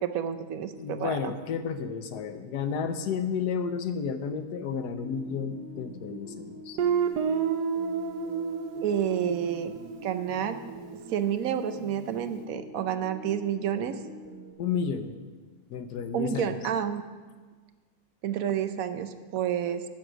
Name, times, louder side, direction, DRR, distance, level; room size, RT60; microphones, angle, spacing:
voice 1, 0.0-1.3 8.8-9.7 10.0-10.6 11.1-14.0 16.1-17.0 18.2-19.8, right 9 dB, 65° right, 10 dB, 1.1 m, -29 dB
voice 2, 0.7-6.8 14.6-15.1 15.7-16.5, left 6 dB, 80° left, 8 dB, 1.3 m, -32 dB
sound 1, 4.9-14.5, right 1 dB, 15° right, 1.1 m, -46 dB
Guitar, 6.8-11.5, right 6 dB, 80° right, 1.4 m, -31 dB
14.5 x 6.5 x 6.2 m, 1.4 s
omnidirectional pair, 1.7 m